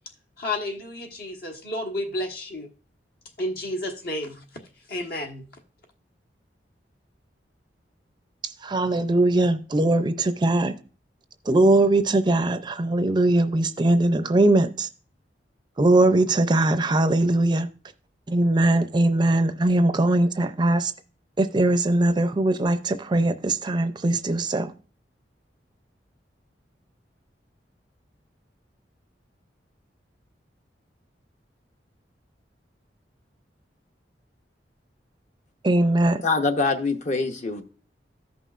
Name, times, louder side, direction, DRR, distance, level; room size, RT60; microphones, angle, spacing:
voice 1, 0.4-2.7 3.4-4.5 4.9-5.5, left 1 dB, 60° left, 1.4 m, -31 dB
voice 2, 8.6-10.7 11.5-14.9 15.8-17.7 18.3-20.9 21.4-24.7 35.6-36.2, right 2 dB, 25° right, 0.4 m, -21 dB
voice 3, 36.2-37.6, left 3 dB, 45° left, 0.9 m, -24 dB
14.5 x 5.5 x 2.4 m
head